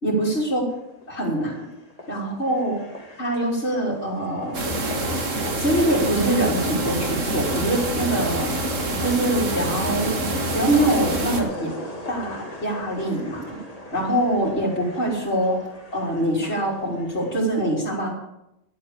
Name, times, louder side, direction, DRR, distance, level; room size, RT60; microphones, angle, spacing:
voice 1, 0.0-0.6 1.1-1.7 2.1-2.7 3.2-4.6 5.6-8.5 9.0-10.1 10.5-11.7 12.1-13.6 13.9-15.6 15.9-18.1, right 1 dB, 50° left, -7 dB, 3.8 m, -24 dB
sound 1, 0.7-17.4, left 1 dB, 25° left, 2.2 m, -41 dB
sound 2, 4.5-11.4, right 1 dB, 65° right, 2.2 m, -26 dB
11.0 x 8.6 x 8.6 m, 0.86 s
omnidirectional pair, 1.4 m